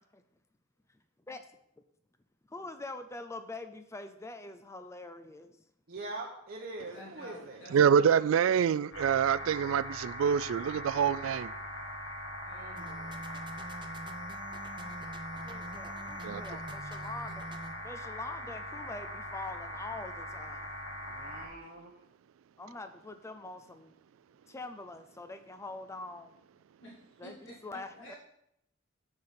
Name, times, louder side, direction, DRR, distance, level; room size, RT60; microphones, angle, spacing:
voice 1, 2.5-5.6 15.4-17.4 17.8-20.7 22.6-23.9 24.5-26.3 27.2-27.3 27.6-28.1, left 2 dB, 15° left, 0.4 m, -44 dB
voice 2, 5.9-7.7 21.0-22.0, right 2 dB, 50° right, 1.0 m, -43 dB
voice 3, 6.9-8.3 12.4-13.2 26.8-28.2, equal, 65° left, 3.4 m, -51 dB
voice 4, 7.7-11.5 16.2-16.4, right 7 dB, 85° right, 0.3 m, -26 dB
sound 1, 8.9-21.5, left 1 dB, 85° left, 1.9 m, -41 dB
sound 2, 12.8-17.8, right 2 dB, 25° right, 0.7 m, -46 dB
7.0 x 6.5 x 5.9 m
head